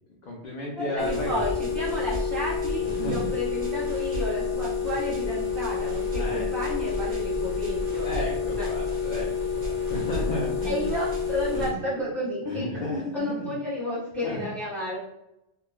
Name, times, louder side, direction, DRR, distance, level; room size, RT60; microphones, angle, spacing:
voice 1, 0.2-1.5 2.8-3.3 6.2-6.5 8.0-10.9 11.5-11.8 12.5-13.4 14.2-14.5, left 2 dB, 55° left, -3 dB, 0.6 m, -33 dB
voice 2, 0.8-8.1 8.6-8.7 10.6-12.7 13.1-15.0, equal, ahead, -9 dB, 0.9 m, -32 dB
sound 1, 1.0-11.7, left 5 dB, 90° left, 1.1 m, -29 dB
sound 2, 1.0-11.7, equal, 55° right, 0.9 m, -41 dB
3.1 x 2.2 x 2.2 m, 0.86 s
omnidirectional pair, 1.2 m